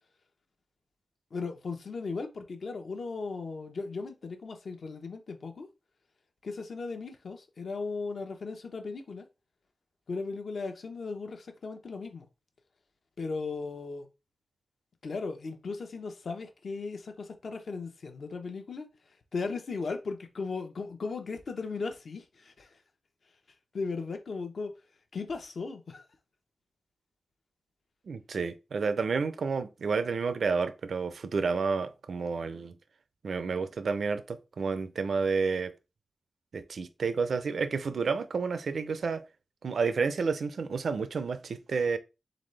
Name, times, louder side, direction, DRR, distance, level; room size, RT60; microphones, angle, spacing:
voice 1, 1.3-5.7 6.4-9.3 10.1-12.3 13.2-14.1 15.0-22.8 23.7-24.7 25.1-26.0, left 4 dB, 60° left, 0.8 m, -37 dB
voice 2, 28.1-32.7 33.2-35.7 36.5-39.2 39.6-42.0, right 5 dB, 65° right, 0.5 m, -30 dB
4.0 x 3.9 x 3.2 m
wide cardioid pair, 150°, 0 cm